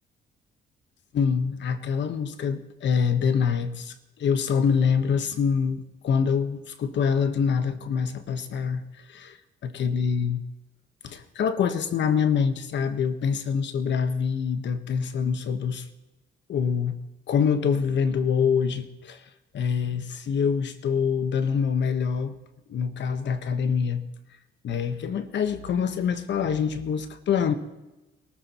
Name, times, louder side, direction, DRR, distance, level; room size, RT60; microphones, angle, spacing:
voice 1, 1.1-8.8 9.1-9.4 9.6-10.4 11.0-15.9 16.5-17.0 17.3-19.2 19.5-22.4 22.7-24.0 24.6-27.5, left 6 dB, 65° left, 10 dB, 1.3 m, -25 dB
22.5 x 13.5 x 3.1 m, 1.0 s
cardioid pair, 90°, 20 cm